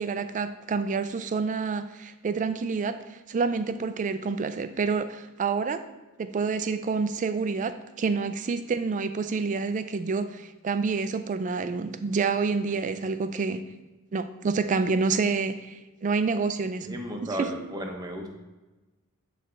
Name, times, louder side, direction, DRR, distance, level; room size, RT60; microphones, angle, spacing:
voice 1, 0.0-3.0 3.3-5.8 6.2-13.6 14.1-16.9, right 4 dB, 35° right, 11 dB, 0.4 m, -28 dB
voice 2, 16.8-18.3, right 1 dB, 15° right, 2 dB, 0.8 m, -34 dB
8.4 x 3.3 x 3.8 m, 1.2 s
head